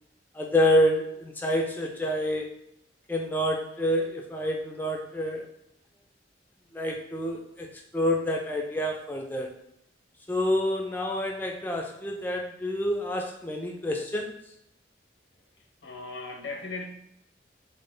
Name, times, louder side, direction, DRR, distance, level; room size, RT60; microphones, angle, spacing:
voice 1, 0.3-2.5 3.1-5.5 6.7-7.7 7.9-9.5 10.3-14.3, left 1 dB, 10° left, 1 dB, 0.3 m, -27 dB
voice 2, 15.8-16.8, left 3 dB, 85° left, 2 dB, 0.8 m, -37 dB
3.8 x 2.1 x 3.6 m, 0.79 s
head